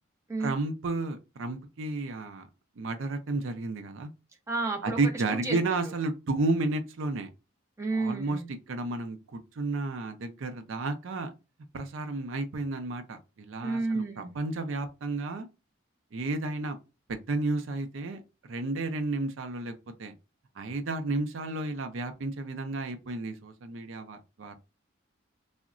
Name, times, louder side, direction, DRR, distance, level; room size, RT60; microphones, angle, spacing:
voice 1, 0.4-2.4 2.8-4.1 4.8-7.3 7.9-8.4 8.7-11.3 11.7-15.5 16.1-16.8 17.1-18.2 18.5-19.7 20.0-20.1 20.6-24.5, right 2 dB, 65° right, 0.5 m, -32 dB
voice 2, 4.5-5.0 5.4-5.9 7.8-8.5 13.6-14.3, right 3 dB, 15° right, 0.6 m, -31 dB
3.7 x 2.1 x 2.4 m
head